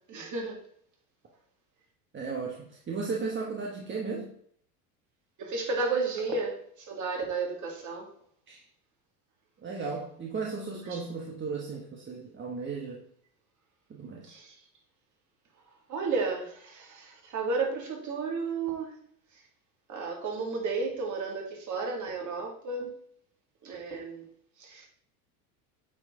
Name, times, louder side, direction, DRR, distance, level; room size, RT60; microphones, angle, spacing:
voice 1, 0.1-0.6 5.4-8.1 10.9-11.0 14.2-14.6 15.9-19.0 19.9-22.9 23.6-24.3 24.6-24.9, right 4 dB, 40° right, 1 dB, 2.3 m, -32 dB
voice 2, 2.1-4.3 8.5-8.6 9.6-13.0 13.9-14.3, right 4 dB, 25° right, -1 dB, 1.3 m, -35 dB
8.6 x 4.7 x 3.7 m, 0.64 s
supercardioid pair, 105°, 45 cm